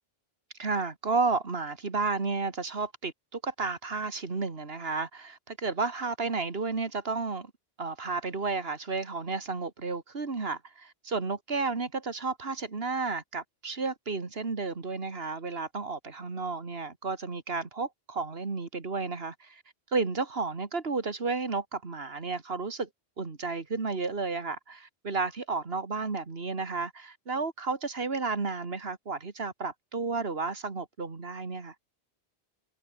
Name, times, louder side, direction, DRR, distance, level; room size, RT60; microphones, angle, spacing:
voice 1, 0.6-7.5 7.8-19.6 19.9-22.9 23.2-31.7, right 4 dB, 70° right, 2.4 m, -32 dB
omnidirectional pair, 1.1 m